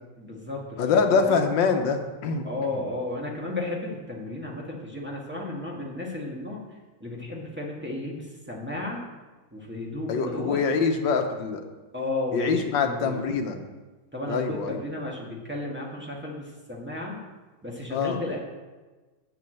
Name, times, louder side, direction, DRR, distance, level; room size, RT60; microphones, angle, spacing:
voice 1, 0.2-1.5 2.4-6.7 7.0-9.0 9.5-10.6 11.9-13.3 14.1-17.2 17.6-18.4, left 2 dB, 5° right, -3 dB, 1.5 m, -33 dB
voice 2, 0.8-2.4 10.1-11.6 12.3-13.6 14.3-14.8 17.9-18.2, left 5 dB, 90° left, 5 dB, 1.6 m, -24 dB
7.0 x 6.4 x 7.8 m, 1.2 s
omnidirectional pair, 1.9 m